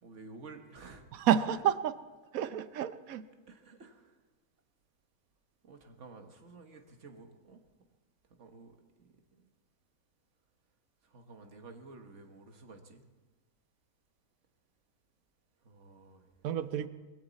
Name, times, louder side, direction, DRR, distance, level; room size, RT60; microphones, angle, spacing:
voice 1, 0.0-1.0 3.5-4.2 5.6-7.6 8.3-9.5 11.0-13.0 15.6-16.5 16.8-16.9, right 3 dB, 55° right, 5 dB, 1.7 m, -52 dB
voice 2, 1.2-2.0 2.3-3.2 16.4-16.9, right 9 dB, 75° right, 13 dB, 1.2 m, -29 dB
21.5 x 15.5 x 4.1 m, 1.2 s
omnidirectional pair, 1.5 m